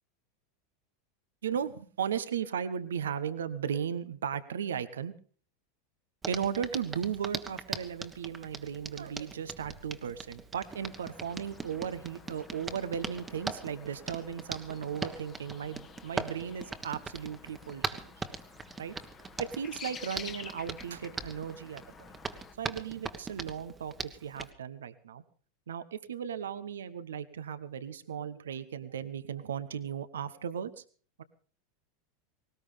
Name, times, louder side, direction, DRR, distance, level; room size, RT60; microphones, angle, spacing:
voice 1, 1.4-5.1 6.3-18.1 18.8-19.0 19.4-22.1 22.6-25.2 25.7-30.8 31.2-31.3, right 8 dB, 75° right, 13 dB, 1.2 m, -36 dB
Hands, 6.2-24.5, right 4 dB, 20° right, 1.5 m, -41 dB
sound 1, 10.6-22.6, left 7 dB, 30° left, 1.6 m, -51 dB
19.5 x 19.0 x 3.5 m, 0.42 s
figure-of-eight pair, 85°, 0 cm